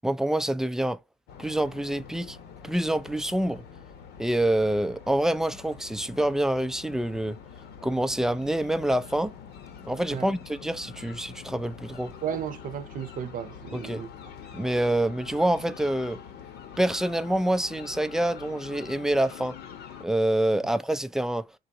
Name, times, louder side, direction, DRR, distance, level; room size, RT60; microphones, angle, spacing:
voice 1, 0.0-1.0 1.4-2.4 2.6-3.6 4.2-7.4 7.8-9.3 9.9-12.1 13.7-14.0 14.5-16.2 16.8-19.6 20.0-21.5, right 1 dB, 5° right, 0.3 m, -26 dB
sound 1, 1.3-20.1, left 7 dB, 75° left, 1.0 m, -45 dB
voice 2, 12.2-14.1 20.6-20.7, right 8 dB, 55° right, 0.7 m, -34 dB
3.8 x 2.5 x 4.1 m
cardioid pair, 110°, 17 cm